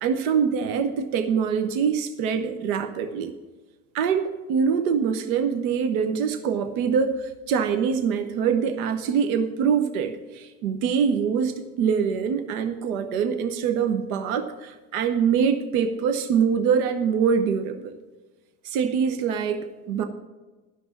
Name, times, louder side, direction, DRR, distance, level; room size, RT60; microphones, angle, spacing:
voice 1, 0.0-3.3 3.9-18.0 18.6-20.1, right 6 dB, 75° right, 8 dB, 0.9 m, -24 dB
11.5 x 6.1 x 7.2 m, 1.3 s
hypercardioid pair, 70°, 42 cm